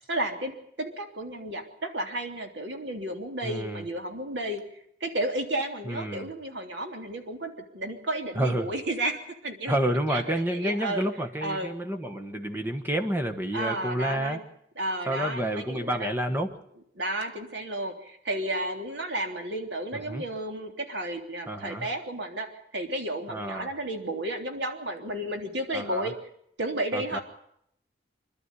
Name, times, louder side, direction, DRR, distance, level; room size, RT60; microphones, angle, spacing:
voice 1, 0.1-0.5 0.8-4.6 5.0-9.8 10.1-11.1 11.4-11.7 13.5-14.4 14.8-16.1 17.0-22.5 22.7-26.1 26.6-27.2, right 1 dB, 80° right, 4 dB, 3.4 m, -32 dB
voice 2, 3.4-3.9 5.8-6.3 8.4-8.7 9.7-14.4 15.1-16.5 19.9-20.2 21.5-21.9 23.3-23.7 25.7-26.1 26.9-27.2, right 1 dB, 10° right, 5 dB, 1.3 m, -29 dB
26.5 x 12.0 x 9.8 m, 0.74 s
head